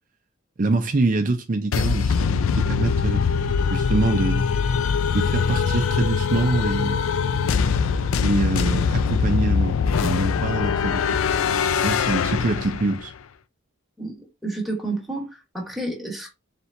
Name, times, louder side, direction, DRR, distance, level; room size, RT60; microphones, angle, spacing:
voice 1, 0.6-3.2 3.7-4.5 5.1-7.1 8.2-11.1 11.8-13.1, right 2 dB, 40° right, 0.5 m, -25 dB
sound 1, 1.7-13.1, left 6 dB, 80° left, 0.4 m, -22 dB
voice 2, 14.0-16.3, right 2 dB, ahead, 1.2 m, -30 dB
4.3 x 3.4 x 2.6 m
head